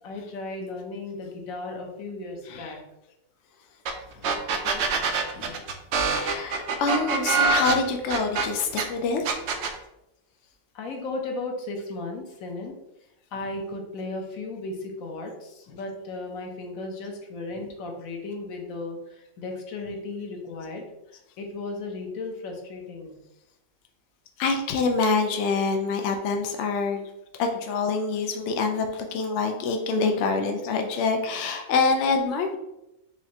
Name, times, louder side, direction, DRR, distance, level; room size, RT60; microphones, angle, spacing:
voice 1, 0.0-2.8 4.6-4.8 5.3-5.6 10.7-12.7 13.3-20.8 21.4-23.2, left 2 dB, 90° left, 2 dB, 1.2 m, -35 dB
sound 1, 3.9-4.0 4.2-8.8 9.3-9.8, right 4 dB, 65° right, 0.8 m, -24 dB
voice 2, 6.1-9.3 24.4-27.1 27.4-32.6, left 4 dB, 65° left, 4 dB, 0.8 m, -26 dB
4.8 x 3.0 x 2.8 m, 0.87 s
omnidirectional pair, 1.4 m